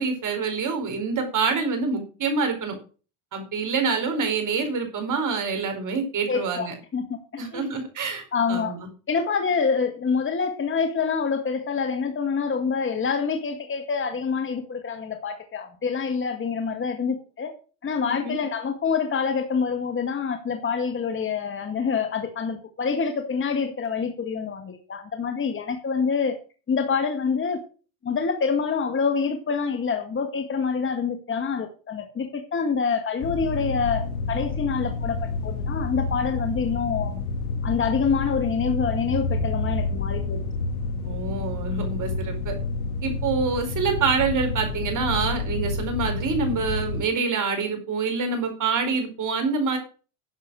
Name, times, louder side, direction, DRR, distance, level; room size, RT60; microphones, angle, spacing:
voice 1, 0.0-2.7 3.3-6.7 7.4-8.9 18.0-18.4 41.0-42.6 43.0-49.8, right 4 dB, 45° right, 6 dB, 4.7 m, -26 dB
voice 2, 6.3-7.7 8.3-8.7 9.1-17.5 17.8-26.4 26.7-27.6 28.0-35.2 35.4-37.3 37.6-40.4, left 5 dB, 25° left, 5 dB, 1.9 m, -26 dB
sound 1, 33.2-47.0, left 3 dB, 75° left, 1.7 m, -29 dB
10.5 x 7.4 x 6.3 m, 0.37 s
hypercardioid pair, 80°, 43 cm